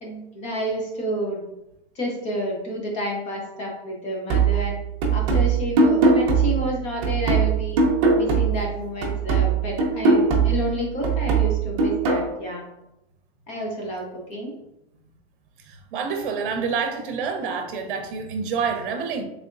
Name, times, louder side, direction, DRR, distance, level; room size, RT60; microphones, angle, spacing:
voice 1, 0.0-1.4 1.9-4.8 5.1-7.8 8.2-12.6 13.5-14.5, equal, 20° left, -1 dB, 0.8 m, -30 dB
sound 1, 4.3-8.7 9.0-12.3, right 4 dB, 30° right, 0.8 m, -20 dB
voice 2, 15.6-19.2, right 5 dB, 55° right, 5 dB, 0.8 m, -27 dB
4.2 x 3.4 x 2.5 m, 0.87 s
supercardioid pair, 165°, 31 cm